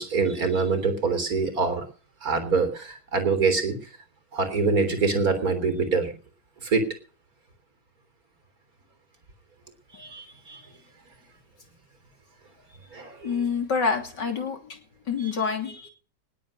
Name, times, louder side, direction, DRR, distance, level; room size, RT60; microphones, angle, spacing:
voice 1, 0.0-1.9 2.2-3.9 4.3-6.2 6.6-6.9 9.9-10.7 12.9-13.4 15.2-15.3, right 4 dB, 55° right, 8 dB, 4.0 m, -25 dB
voice 2, 13.2-14.8 15.1-15.9, left 5 dB, 85° left, 5 dB, 3.6 m, -27 dB
20.0 x 8.3 x 6.4 m, 0.38 s
omnidirectional pair, 1.8 m